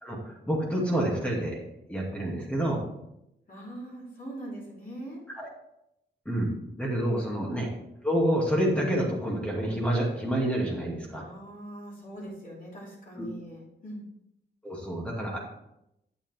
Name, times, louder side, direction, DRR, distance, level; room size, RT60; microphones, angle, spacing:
voice 1, 0.0-1.6 1.9-2.8 5.4-5.5 6.3-6.5 6.8-7.7 8.0-11.2 13.2-13.3 14.6-15.4, right 1 dB, 5° left, -2 dB, 2.4 m, -28 dB
voice 2, 3.5-5.2 7.4-7.5 11.2-14.0, right 1 dB, 50° left, -5 dB, 3.4 m, -42 dB
8.7 x 7.1 x 3.6 m, 0.83 s
cardioid pair, 80°, 19 cm